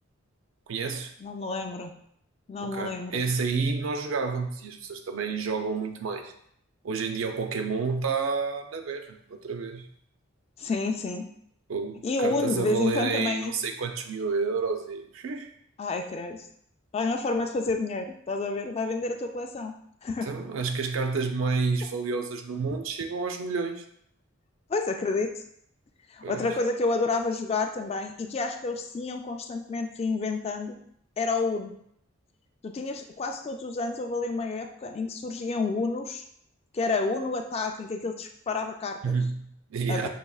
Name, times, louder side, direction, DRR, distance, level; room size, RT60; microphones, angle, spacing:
voice 1, 0.7-1.1 2.6-6.3 6.8-9.9 11.7-15.5 20.2-23.8 26.2-26.6 39.0-40.1, right 4 dB, 75° right, 6 dB, 0.5 m, -30 dB
voice 2, 1.2-1.9 2.5-3.2 10.6-11.2 12.0-13.6 15.8-16.4 16.9-19.7 20.0-20.3 24.7-25.3 26.1-30.8 31.2-31.7 32.6-36.2 36.7-39.1 39.9-40.1, left 3 dB, 30° left, 5 dB, 0.3 m, -29 dB
5.6 x 2.8 x 2.3 m, 0.69 s
head